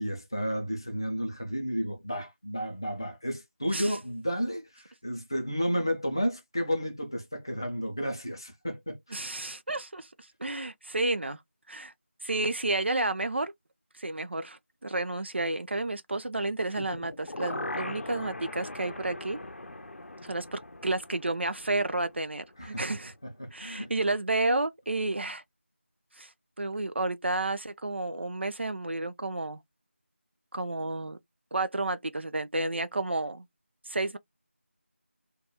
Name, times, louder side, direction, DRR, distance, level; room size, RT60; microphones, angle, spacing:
voice 1, 0.0-9.2 22.6-22.8 23.4-23.9, equal, 20° left, 0.4 m, -32 dB
voice 2, 9.1-10.1 10.4-11.4 11.7-11.9 12.2-13.5 14.0-19.4 20.2-23.1 23.5-25.4 26.2-26.3 26.6-29.6 30.5-31.2 31.5-33.5 33.9-34.2, right 2 dB, 60° right, 0.3 m, -31 dB
sound 1, 16.7-22.7 23.0-23.1, left 2 dB, 75° left, 0.6 m, -40 dB
2.2 x 2.0 x 2.7 m
figure-of-eight pair, 175°, 7 cm